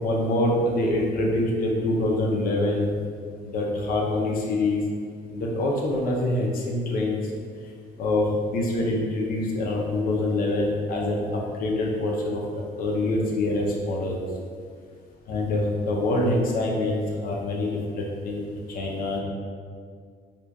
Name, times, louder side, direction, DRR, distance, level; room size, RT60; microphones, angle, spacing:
voice 1, 0.0-2.9 3.4-4.8 5.3-7.2 8.0-11.2 11.6-12.4 12.8-14.2 15.3-18.4 18.7-19.2, left 2 dB, 60° left, -2 dB, 0.5 m, -25 dB
2.5 x 2.3 x 2.2 m, 2.1 s
cardioid pair, 110°, 17 cm